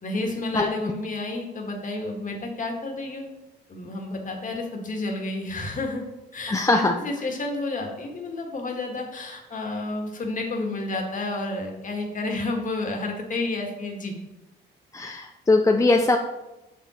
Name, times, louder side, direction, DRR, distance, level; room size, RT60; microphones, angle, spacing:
voice 1, 0.0-3.2 3.7-6.0 6.3-14.1, left 2 dB, 40° left, 2 dB, 1.7 m, -30 dB
voice 2, 6.5-6.9 14.9-16.2, left 2 dB, 15° left, 3 dB, 0.5 m, -20 dB
7.0 x 4.7 x 4.3 m, 0.98 s
cardioid pair, 90°, 20 cm